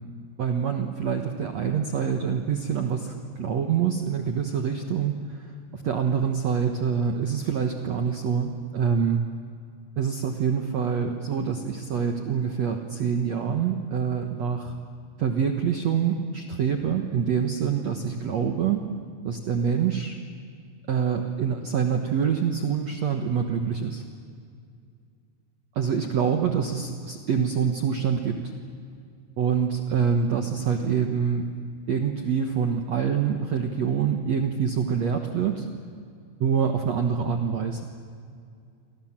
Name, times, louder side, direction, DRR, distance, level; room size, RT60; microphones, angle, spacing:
voice 1, 0.4-9.2 10.0-14.7 15.2-18.8 19.2-20.2 20.9-24.0 25.7-28.5 29.4-35.6 36.4-37.8, right 7 dB, 75° right, 4 dB, 1.6 m, -26 dB
30.0 x 25.0 x 7.4 m, 2.3 s
omnidirectional pair, 5.1 m